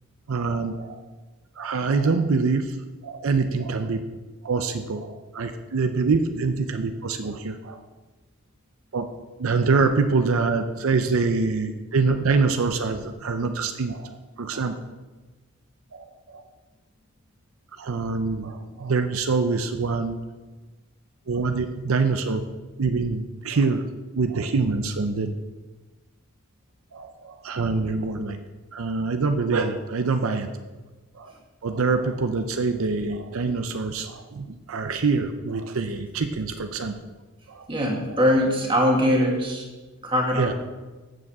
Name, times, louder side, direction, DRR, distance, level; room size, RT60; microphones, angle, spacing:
voice 1, 0.3-1.0 1.6-2.8 3.0-4.0 4.4-7.8 8.9-9.1 9.4-14.8 15.9-16.4 17.8-20.2 21.3-22.4 22.8-23.8 24.1-25.4 26.9-28.4 28.7-30.5 31.1-31.3 31.6-36.9 37.5-37.7 39.2-39.3 40.3-40.5, right 4 dB, 65° right, 7 dB, 0.5 m, -25 dB
voice 2, 37.7-39.6 40.0-40.5, equal, 20° right, 0 dB, 1.6 m, -22 dB
8.8 x 7.3 x 4.7 m, 1.2 s
head